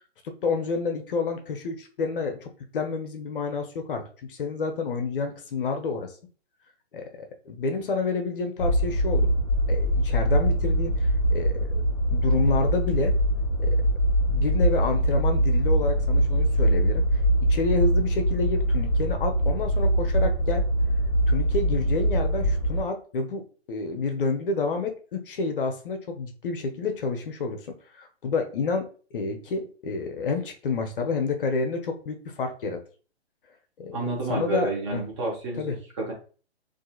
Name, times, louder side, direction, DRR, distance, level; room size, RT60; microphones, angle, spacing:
voice 1, 0.2-6.2 6.9-9.3 9.7-11.7 12.1-13.1 13.6-13.8 14.3-17.0 17.5-20.6 21.3-23.4 23.7-28.9 29.1-32.8 33.8-34.0 34.3-35.0 35.6-35.7, left 4 dB, 55° left, 5 dB, 0.6 m, -29 dB
sound 1, 8.6-22.8, right 1 dB, 35° left, 1.0 m, -23 dB
voice 2, 33.9-36.1, right 2 dB, 25° right, -1 dB, 0.7 m, -30 dB
2.7 x 2.4 x 2.3 m, 0.39 s
hypercardioid pair, 145°, 33 cm